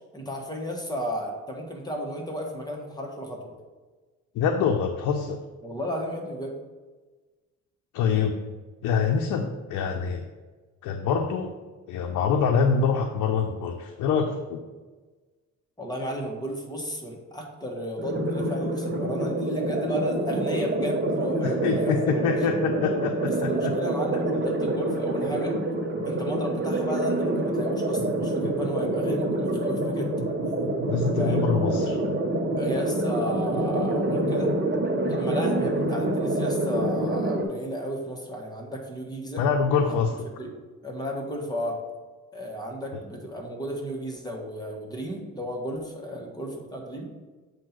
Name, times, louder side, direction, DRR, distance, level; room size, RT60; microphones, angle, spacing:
voice 1, 0.1-3.4 5.6-6.6 15.8-22.2 23.3-25.6 26.0-30.1 31.2-31.5 32.5-34.6 35.1-39.4 39.8-40.0 40.4-40.6 40.8-41.8 42.3-47.1, equal, 15° left, 0 dB, 1.5 m, -33 dB
voice 2, 4.3-5.4 7.9-8.3 8.8-10.2 10.8-11.5 11.9-14.6 21.4-23.7 30.9-32.0 39.4-40.3 42.9-43.0, left 6 dB, 85° left, 4 dB, 0.6 m, -25 dB
sound 1, 18.0-37.5, right 1 dB, 35° right, 1.1 m, -26 dB
7.4 x 2.7 x 5.9 m, 1.3 s
cardioid pair, 90°, 30 cm